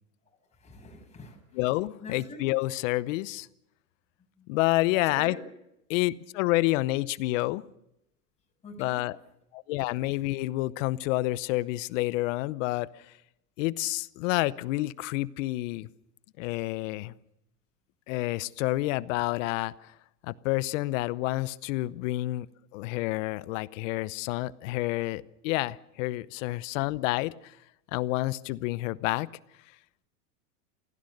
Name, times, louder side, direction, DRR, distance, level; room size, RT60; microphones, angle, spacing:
voice 1, 0.5-1.6 2.0-2.4 4.4-4.5 5.0-5.5 8.6-9.1, left 2 dB, 15° left, 0 dB, 7.2 m, -44 dB
voice 2, 1.5-3.5 4.5-5.4 5.9-7.6 8.8-9.2 9.5-13.1 13.6-15.9 16.4-17.1 18.1-19.9 20.2-22.5 22.7-27.6 27.9-29.3, left 19 dB, 55° left, 18 dB, 0.9 m, -29 dB
28.0 x 16.5 x 6.6 m, 0.84 s
hypercardioid pair, 125°, 46 cm